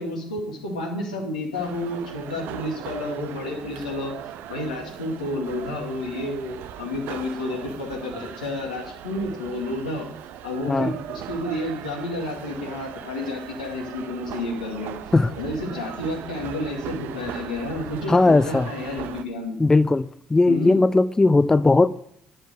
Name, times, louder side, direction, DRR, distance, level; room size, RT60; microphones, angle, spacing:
voice 1, 0.0-4.2 4.5-10.0 10.4-14.9 15.4-19.6 20.5-20.8, left 1 dB, 80° left, 2.4 m, -30 dB
sound 1, 1.5-19.2, right 10 dB, 60° right, 0.6 m, -38 dB
voice 2, 18.1-18.7 19.6-21.9, left 3 dB, 15° left, 0.4 m, -18 dB
11.0 x 6.4 x 6.5 m
figure-of-eight pair, 50°, 4 cm